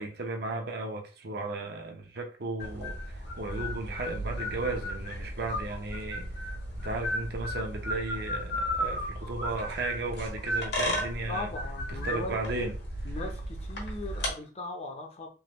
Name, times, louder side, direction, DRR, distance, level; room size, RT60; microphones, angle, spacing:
voice 1, 0.0-6.3 6.8-11.5 11.9-12.7, right 2 dB, 65° right, 0.7 m, -35 dB
sound 1, 2.6-14.3, equal, 65° left, 1.1 m, -34 dB
voice 2, 11.3-12.7 13.0-15.3, left 2 dB, 35° left, 0.6 m, -38 dB
3.5 x 2.1 x 3.0 m
head